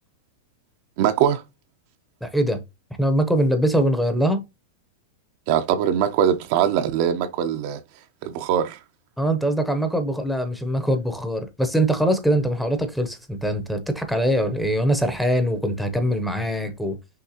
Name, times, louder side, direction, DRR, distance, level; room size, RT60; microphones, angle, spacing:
voice 1, 1.0-1.4 5.5-7.8 8.2-8.8, right 9 dB, 50° right, 0.5 m, -22 dB
voice 2, 2.2-2.6 3.0-4.4 9.2-17.0, right 1 dB, ahead, 0.7 m, -22 dB
5.8 x 3.2 x 2.8 m
supercardioid pair, 150°, 0 cm